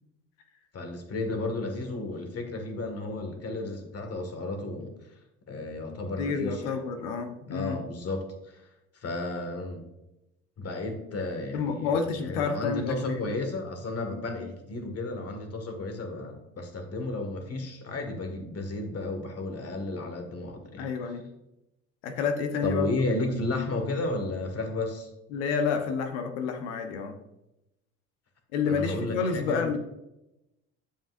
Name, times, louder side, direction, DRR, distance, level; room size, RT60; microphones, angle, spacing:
voice 1, 0.7-4.9 5.5-6.8 7.5-8.6 9.0-9.8 10.6-20.9 22.6-25.1 28.6-29.8, left 2 dB, 45° left, 5 dB, 1.9 m, -33 dB
voice 2, 6.2-7.8 11.5-13.3 20.8-21.2 22.0-22.9 25.3-27.2 28.5-29.8, left 5 dB, 80° left, 6 dB, 1.1 m, -29 dB
8.9 x 7.4 x 2.6 m, 0.91 s
hypercardioid pair, 65°, 35 cm